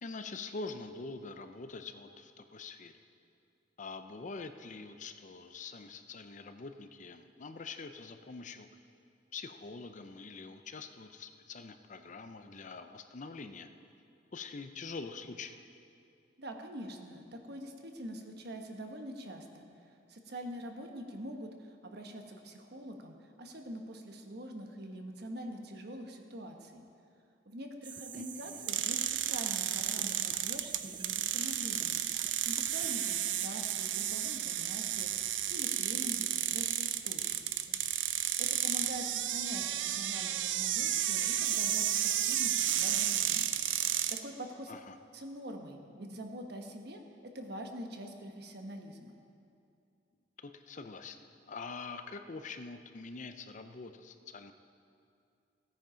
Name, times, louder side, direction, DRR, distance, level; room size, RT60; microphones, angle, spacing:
voice 1, 0.0-2.9 3.8-8.7 9.3-13.7 14.3-15.6 28.1-28.6 44.7-45.0 50.4-54.5, left 4 dB, 40° left, 8 dB, 0.6 m, -45 dB
voice 2, 16.4-26.8 27.4-32.0 32.4-35.1 35.5-37.8 38.4-43.5 43.8-44.7 45.1-49.1, equal, 60° right, 4 dB, 1.2 m, -44 dB
sound 1, 27.8-33.2, right 8 dB, 25° right, 0.4 m, -46 dB
sound 2, 28.7-44.2, right 11 dB, 80° right, 0.6 m, -32 dB
16.0 x 9.2 x 5.1 m, 2.5 s
head